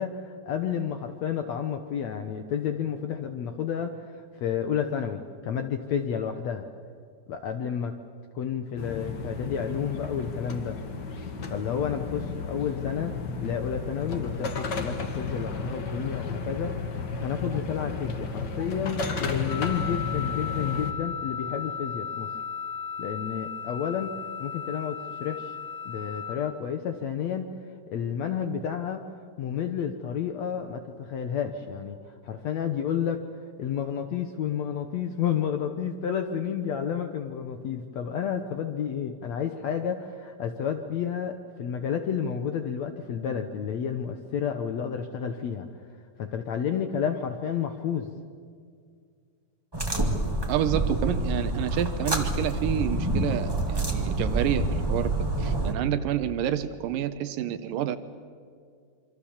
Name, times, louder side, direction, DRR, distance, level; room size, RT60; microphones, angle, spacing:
voice 1, 0.0-6.7 7.3-8.0 8.4-10.8 11.5-13.1 13.4-16.8 17.2-22.3 23.0-25.6 25.9-27.5 27.9-29.0 29.4-32.0 32.2-33.2 33.6-45.7 46.2-48.1, left 8 dB, 70° left, 7 dB, 1.7 m, -31 dB
sound 1, 8.8-20.9, left 4 dB, 45° left, 1.4 m, -33 dB
Wind instrument woodwind instrument, 19.5-26.4, left 6 dB, 85° left, 6.3 m, -35 dB
sound 2, 49.7-55.7, right 2 dB, 10° right, 1.1 m, -27 dB
voice 2, 50.5-55.1 55.4-58.0, right 10 dB, 75° right, 11 dB, 2.4 m, -29 dB
27.0 x 24.5 x 7.2 m, 2.2 s
omnidirectional pair, 4.2 m